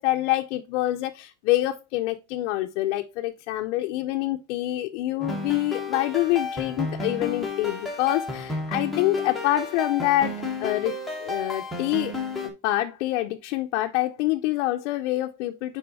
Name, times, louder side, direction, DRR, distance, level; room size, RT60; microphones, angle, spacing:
voice 1, 0.0-10.9 11.2-12.1 12.6-15.8, left 16 dB, 80° left, 0.7 m, -26 dB
sound 1, 5.2-12.5, left 2 dB, ahead, 1.2 m, -32 dB
5.5 x 4.9 x 4.2 m
cardioid pair, 165°, 35 cm